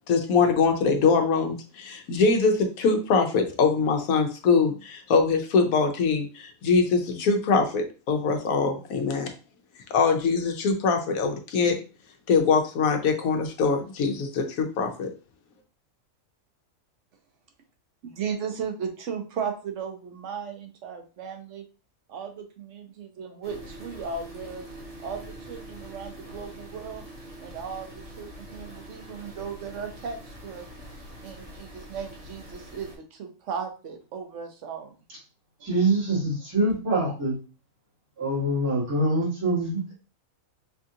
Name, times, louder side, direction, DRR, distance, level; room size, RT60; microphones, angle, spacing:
voice 1, 0.1-9.3 9.9-11.8 12.3-15.1, left 4 dB, 75° left, 4 dB, 1.1 m, -23 dB
voice 2, 18.0-21.6 22.1-24.6 25.0-27.0 27.4-30.7 31.2-34.9, right 6 dB, 60° right, 4 dB, 1.1 m, -36 dB
sound 1, 23.4-33.0, right 1 dB, 25° right, 1.2 m, -44 dB
voice 3, 35.6-37.4 38.2-39.9, right 2 dB, 85° right, -7 dB, 2.6 m, -25 dB
5.0 x 2.5 x 2.7 m, 0.34 s
omnidirectional pair, 1.5 m